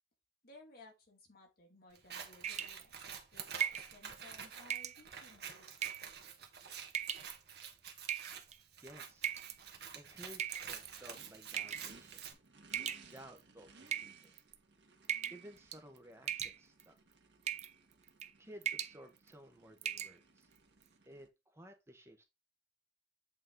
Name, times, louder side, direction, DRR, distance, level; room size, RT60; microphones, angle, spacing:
voice 1, 0.4-5.7, left 2 dB, 55° left, 2.4 m, -60 dB
Scissors, 1.9-12.3, right 7 dB, 65° right, 1.3 m, -49 dB
sound 1, 2.4-2.8 3.6-3.9 4.7-5.0 5.8-6.1 6.9-7.3 8.1-8.5 9.2-9.6 10.4-11.0 11.6-11.9 12.7-13.4 13.9-14.5 15.1-15.4 15.7-16.0 16.3-16.8 17.5-17.7 18.1-18.3 18.6-19.0 19.3-19.4 19.8-20.1, right 8 dB, 40° right, 0.6 m, -38 dB
voice 2, 8.8-9.3 9.9-12.2 13.0-14.3 15.3-16.9 18.4-20.5 21.0-22.2, equal, 15° right, 1.1 m, -55 dB
Race car auto racing / Idling / Accelerating revving vroom, 9.4-21.3, right 3 dB, 80° right, 1.4 m, -63 dB
8.1 x 4.2 x 3.8 m
head